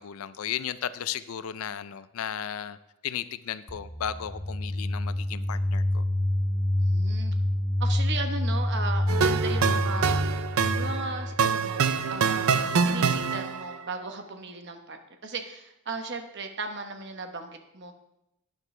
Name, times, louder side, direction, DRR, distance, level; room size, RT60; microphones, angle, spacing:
voice 1, 0.0-2.8 3.0-6.0, left 9 dB, 70° left, 15 dB, 0.4 m, -35 dB
sound 1, 3.7-11.4, left 1 dB, 30° left, 1.8 m, -27 dB
voice 2, 6.8-7.3 7.8-10.2 10.7-11.8 12.1-17.9, right 3 dB, 50° right, 6 dB, 1.0 m, -36 dB
sound 2, 9.1-13.8, right 6 dB, 70° right, 0.5 m, -25 dB
11.5 x 9.6 x 3.2 m, 0.85 s
head